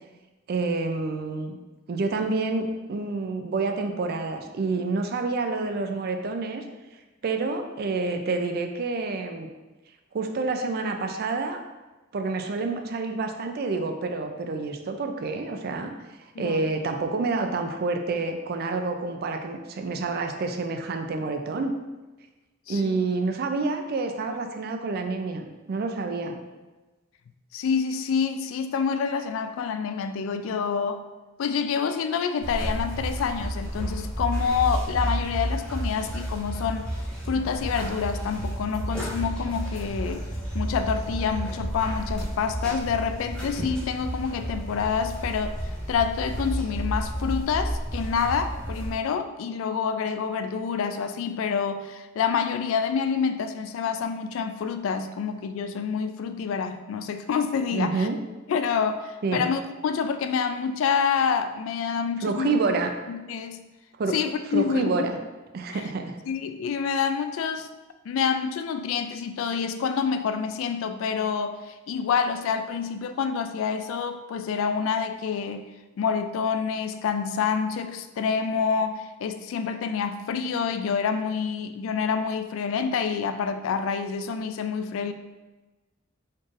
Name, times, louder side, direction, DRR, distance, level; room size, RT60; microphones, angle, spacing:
voice 1, 0.5-1.5 1.9-6.6 7.2-9.5 10.1-11.6 12.1-15.9 16.2-21.7 22.7-26.4 57.7-58.2 59.2-59.5 62.2-62.9 64.0-64.2 64.5-65.2 65.5-66.2, right 3 dB, 50° right, 5 dB, 0.4 m, -28 dB
voice 2, 22.7-23.1 27.5-31.0 31.4-36.9 37.3-40.2 40.5-58.1 58.5-62.6 63.1-63.7 64.1-65.1 65.7-65.8 66.3-67.7 68.1-75.6 76.0-85.1, left 6 dB, 75° left, 9 dB, 0.3 m, -27 dB
sound 1, 32.4-48.9, equal, 5° left, 1.2 m, -31 dB
4.3 x 3.2 x 2.5 m, 1.2 s
head